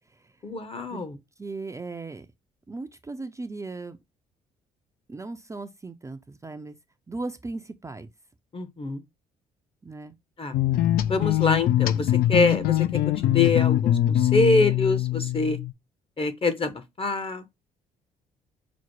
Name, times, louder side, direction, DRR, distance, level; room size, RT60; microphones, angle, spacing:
voice 1, 0.4-1.2 8.5-9.0 10.4-10.6 11.1-15.6 16.2-17.4, left 3 dB, 30° left, 0.9 m, -25 dB
voice 2, 1.4-2.3 2.7-4.0 5.1-6.8 7.1-8.1 9.8-10.2, right 3 dB, 15° right, 0.5 m, -37 dB
sound 1, 10.5-15.7, left 13 dB, 60° left, 0.4 m, -23 dB
6.0 x 2.1 x 3.0 m
hypercardioid pair, 55°, 17 cm